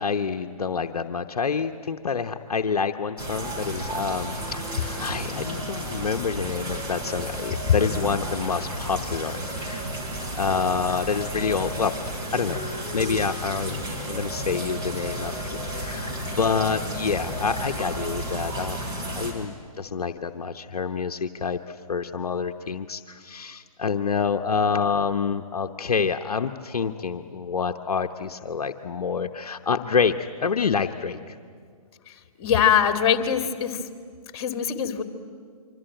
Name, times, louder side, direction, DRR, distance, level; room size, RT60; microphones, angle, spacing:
voice 1, 0.0-9.9 10.4-11.9 12.3-12.7 12.9-13.8 14.1-15.3 15.7-16.1 16.4-18.8 19.1-31.4, left 5 dB, 80° left, 6 dB, 1.0 m, -27 dB
sound 1, 3.2-19.3, right 1 dB, 20° right, 4.9 m, -32 dB
voice 2, 32.1-33.8 34.3-35.0, left 8 dB, 45° left, 7 dB, 2.3 m, -23 dB
25.0 x 25.0 x 9.0 m, 2.1 s
hypercardioid pair, 135°, 19 cm